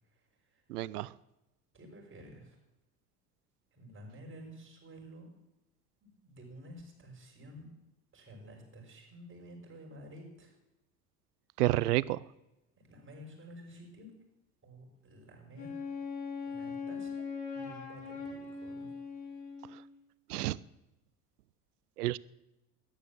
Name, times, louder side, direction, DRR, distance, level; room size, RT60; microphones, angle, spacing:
voice 1, 0.7-1.1 11.6-12.2 20.3-20.6 22.0-22.2, right 17 dB, 75° right, 22 dB, 0.6 m, -29 dB
voice 2, 1.7-2.6 3.7-5.3 6.0-7.6 8.1-10.6 12.8-14.1 14.6-15.9 16.4-17.3 17.5-18.9, equal, 25° right, 0 dB, 5.9 m, -51 dB
Wind instrument woodwind instrument, 15.5-19.9, left 5 dB, 40° left, 7.4 m, -40 dB
13.5 x 11.5 x 7.2 m, 0.96 s
figure-of-eight pair, 70°, 47 cm